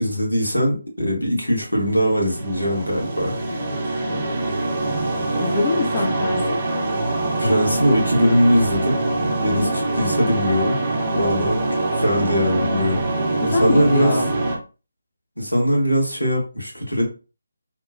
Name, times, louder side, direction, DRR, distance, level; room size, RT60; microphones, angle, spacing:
voice 1, 0.0-3.4 7.4-9.0 9.4-10.8 11.1-13.0 13.4-14.2 15.4-17.0, equal, 85° left, -1 dB, 1.2 m, -21 dB
sound 1, 1.9-14.6, right 2 dB, 30° right, 0.6 m, -24 dB
voice 2, 5.3-6.6 9.5-9.7 13.4-14.3, left 3 dB, 25° left, 1 dB, 0.6 m, -24 dB
2.9 x 2.2 x 2.3 m, 0.33 s
figure-of-eight pair, 150°, 0 cm